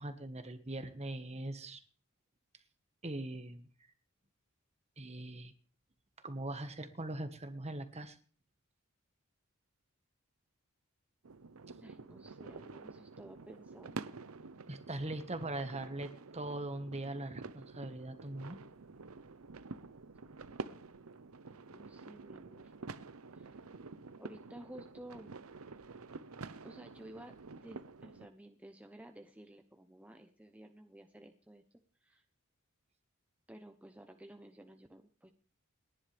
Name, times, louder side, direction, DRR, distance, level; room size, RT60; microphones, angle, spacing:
voice 1, 0.0-1.8 3.0-3.6 5.0-5.5 6.2-8.2 14.7-18.6, right 2 dB, 30° right, 8 dB, 1.5 m, -41 dB
sound 1, 11.2-28.3, right 4 dB, 75° right, 0.8 m, -49 dB
voice 2, 11.8-14.1 21.5-22.7 23.3-23.6 24.2-25.4 26.6-31.6 32.0-32.2 33.5-35.3, right 1 dB, 5° right, 4 dB, 0.8 m, -54 dB
29.5 x 10.5 x 3.4 m, 0.41 s
head